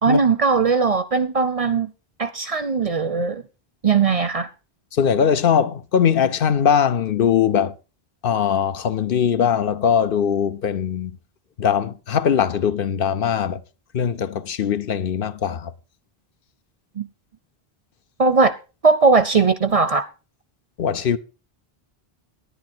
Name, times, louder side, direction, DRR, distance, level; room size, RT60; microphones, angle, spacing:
voice 1, 0.0-1.9 2.2-3.4 3.8-4.5 17.0-17.1 18.2-18.5 18.8-20.1, right 4 dB, 45° right, 0.6 m, -19 dB
voice 2, 4.9-7.7 8.2-11.1 11.6-13.6 13.9-15.7 20.8-21.2, left 8 dB, 65° left, 0.8 m, -20 dB
10.5 x 10.0 x 4.4 m
omnidirectional pair, 1.0 m